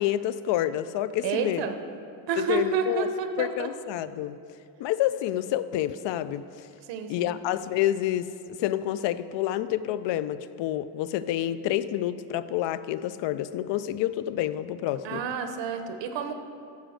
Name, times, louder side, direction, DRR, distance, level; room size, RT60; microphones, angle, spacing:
voice 1, 0.0-1.6 2.4-3.1 3.4-4.4 4.8-6.7 7.1-15.2, left 12 dB, 85° left, 14 dB, 0.5 m, -28 dB
voice 2, 1.2-1.8 2.3-3.7 6.9-7.4 15.0-16.3, right 6 dB, 85° right, 7 dB, 1.1 m, -29 dB
14.5 x 5.2 x 6.4 m, 2.5 s
cardioid pair, 155°, 42 cm